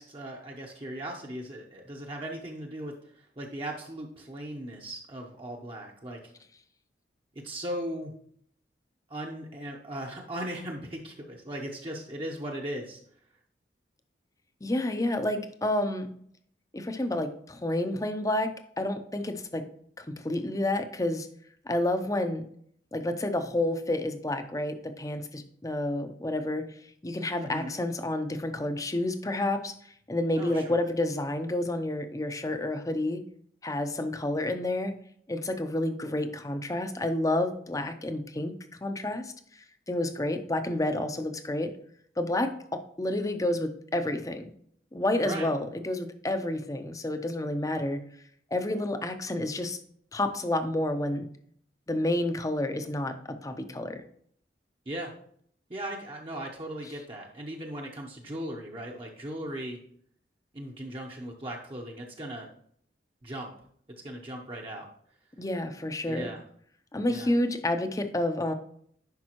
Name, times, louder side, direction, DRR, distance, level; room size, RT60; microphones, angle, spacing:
voice 1, 0.0-6.2 7.4-8.1 9.1-13.0 27.4-27.8 30.4-30.8 45.2-45.5 54.9-55.1 55.7-59.8 60.5-62.5 63.2-63.5 64.0-64.9 66.1-66.4 67.1-67.3, right 1 dB, 30° right, -1 dB, 0.8 m, -38 dB
voice 2, 14.6-16.1 16.7-19.6 20.0-21.3 21.7-22.4 22.9-26.7 27.0-33.2 33.6-34.9 35.3-38.5 38.8-41.7 42.2-44.5 44.9-48.0 48.5-49.8 50.1-51.3 51.9-54.0 65.4-66.3 66.9-68.5, left 1 dB, 20° left, 8 dB, 0.6 m, -30 dB
10.5 x 5.3 x 3.0 m, 0.63 s
head